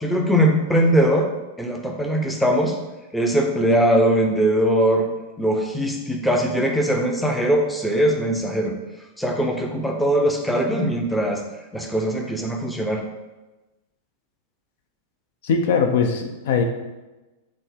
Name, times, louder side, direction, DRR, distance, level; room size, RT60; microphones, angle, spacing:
voice 1, 0.0-2.8 3.1-5.1 5.4-8.7 9.2-11.4 11.7-13.0, right 1 dB, 5° left, 1 dB, 0.5 m, -21 dB
voice 2, 15.4-16.6, left 5 dB, 65° left, 5 dB, 0.4 m, -20 dB
3.9 x 2.0 x 3.4 m, 1.1 s
hypercardioid pair, 105°, 0 cm